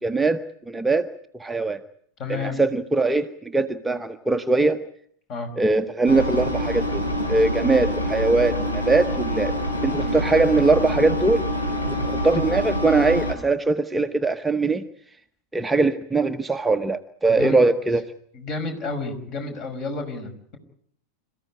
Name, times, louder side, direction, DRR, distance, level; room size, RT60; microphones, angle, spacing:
voice 1, 0.0-1.1 1.4-1.8 2.3-4.8 5.6-9.5 9.8-11.4 12.0-14.8 15.5-18.0, right 3 dB, 5° right, 7 dB, 1.0 m, -21 dB
voice 2, 2.2-2.6 5.3-5.5 10.0-10.2 11.8-12.1 17.3-17.6 18.3-20.6, left 3 dB, 35° left, 8 dB, 5.7 m, -31 dB
Engine, 6.1-13.3, equal, 75° left, 4.5 m, -26 dB
27.0 x 14.5 x 9.9 m, 0.65 s
figure-of-eight pair, 90°, 0 cm